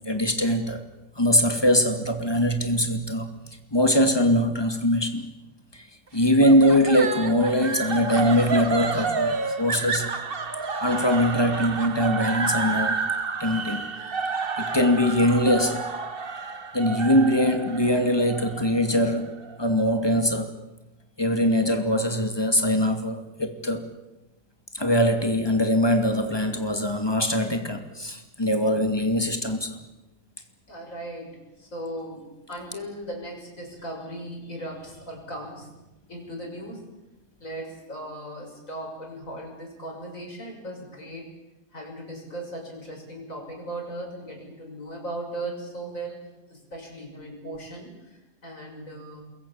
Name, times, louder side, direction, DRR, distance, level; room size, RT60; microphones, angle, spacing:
voice 1, 0.1-0.8 1.2-3.3 3.7-5.2 6.1-10.1 10.8-13.0 13.4-13.9 14.6-15.9 16.7-19.3 19.6-20.5 21.2-23.9 24.7-29.8, equal, 15° left, 2.5 m, -22 dB
sound 1, 6.4-19.6, right 4 dB, 35° right, 1.4 m, -30 dB
voice 2, 30.7-35.7 36.1-36.8 37.4-41.3 41.7-46.2 46.5-49.2, right 1 dB, 50° left, 6.8 m, -37 dB
27.5 x 22.5 x 7.3 m
omnidirectional pair, 1.8 m